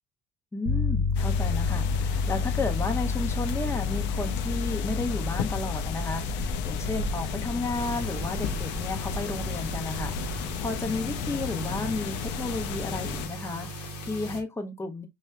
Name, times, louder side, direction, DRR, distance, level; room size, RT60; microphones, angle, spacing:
voice 1, 0.5-15.1, left 3 dB, 10° left, 0.9 m, -33 dB
sound 1, 0.7-10.8, left 4 dB, 30° right, 1.0 m, -31 dB
sound 2, 1.1-13.3, left 5 dB, 65° left, 0.6 m, -33 dB
sound 3, 7.7-14.4, equal, 80° left, 0.9 m, -39 dB
5.3 x 2.1 x 2.3 m
hypercardioid pair, 55°, 20 cm